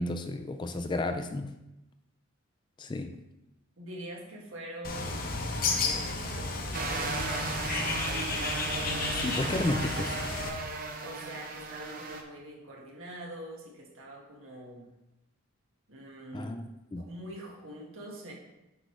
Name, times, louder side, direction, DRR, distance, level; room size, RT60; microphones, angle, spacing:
voice 1, 0.0-1.5 2.8-3.1 9.1-10.2 16.3-17.1, left 2 dB, 20° left, 7 dB, 0.3 m, -32 dB
voice 2, 3.8-7.2 11.0-14.9 15.9-16.6 16.9-18.3, right 1 dB, 75° right, -2 dB, 1.6 m, -44 dB
Bird, 4.8-10.5, left 3 dB, 45° left, 0.8 m, -33 dB
sound 1, 6.7-12.2, right 3 dB, 40° right, 0.7 m, -35 dB
8.0 x 4.9 x 3.2 m, 0.94 s
head